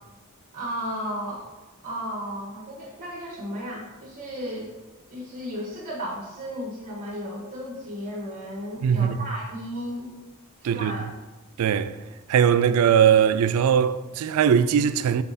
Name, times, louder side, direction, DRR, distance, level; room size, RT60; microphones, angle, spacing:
voice 1, 0.5-1.5 1.8-4.7 5.1-10.1 10.6-11.1, equal, 35° right, 1.2 m, -34 dB
voice 2, 8.8-9.2 10.6-10.9 11.6-12.0 12.3-15.2, right 8 dB, 75° right, 0.3 m, -20 dB
5.7 x 4.1 x 4.1 m
head